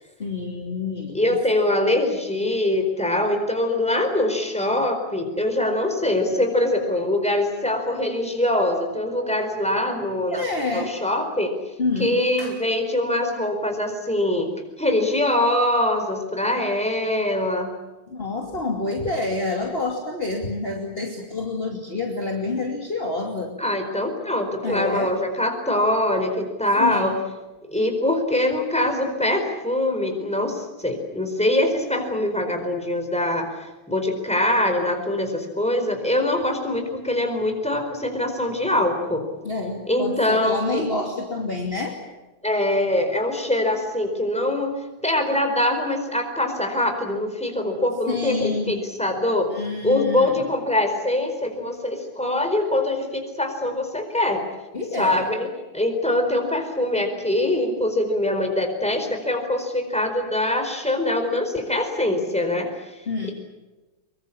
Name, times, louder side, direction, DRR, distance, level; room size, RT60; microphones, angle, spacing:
voice 1, 0.2-1.2 10.3-11.0 11.8-12.6 18.1-23.6 24.6-25.1 26.8-27.2 39.4-42.0 48.1-48.9 49.5-50.5 54.7-55.3 63.1-63.3, left 3 dB, 25° left, 0 dB, 2.9 m, -28 dB
voice 2, 1.1-10.4 10.7-11.5 12.0-14.5 14.8-17.7 23.6-27.2 27.7-39.2 39.9-40.8 42.4-44.8 45.0-49.5 49.8-54.4 55.0-55.5 55.7-63.0, left 1 dB, 5° left, 4 dB, 4.4 m, -23 dB
24.0 x 23.5 x 8.7 m, 1.1 s
omnidirectional pair, 2.4 m